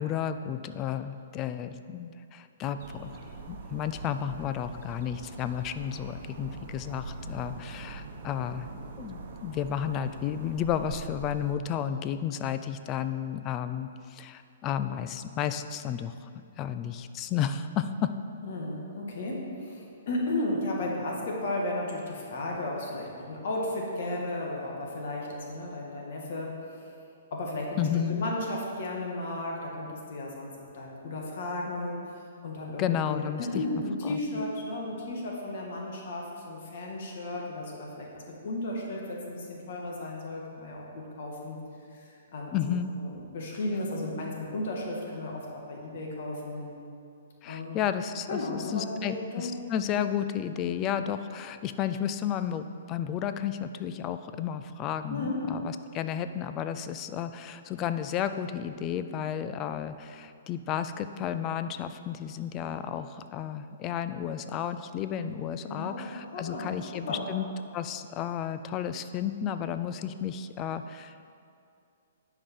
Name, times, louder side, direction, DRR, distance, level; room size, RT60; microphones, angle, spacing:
voice 1, 0.0-3.1 3.5-8.7 9.0-16.3 16.6-18.1 27.8-28.3 32.8-33.6 34.0-34.2 42.5-42.9 47.4-67.5 67.7-71.1, left 9 dB, 25° left, 11 dB, 0.4 m, -32 dB
sound 1, 2.8-11.5, right 3 dB, 55° right, 0.9 m, -43 dB
voice 2, 18.4-26.9 27.3-32.0 32.4-41.6 41.9-42.6 43.0-46.7 47.4-47.8 48.3-49.5 55.1-55.4 65.6-66.0 66.3-67.2, left 2 dB, 60° left, -2 dB, 1.6 m, -34 dB
10.5 x 5.0 x 4.4 m, 2.4 s
hypercardioid pair, 145°, 0 cm